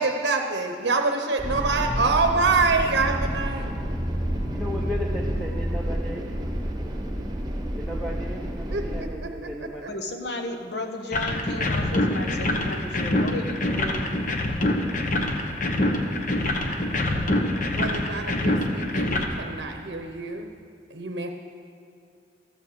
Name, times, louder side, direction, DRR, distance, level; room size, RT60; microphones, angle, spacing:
voice 1, 0.0-3.7 8.7-9.3 9.8-9.9 17.7-20.5 20.9-21.3, right 4 dB, 75° right, 4 dB, 0.8 m, -26 dB
sound 1, 1.4-7.3, equal, 20° left, 3.0 m, -32 dB
sound 2, 1.4-9.0, equal, 25° right, 1.0 m, -31 dB
voice 2, 4.5-6.3 7.8-9.9 13.7-13.9, equal, ahead, -2 dB, 0.7 m, -35 dB
voice 3, 9.9-13.5, left 2 dB, 70° left, 4 dB, 1.1 m, -33 dB
sound 3, 11.1-19.3, left 1 dB, 45° left, 1.0 m, -25 dB
13.5 x 8.2 x 6.7 m, 2.4 s
head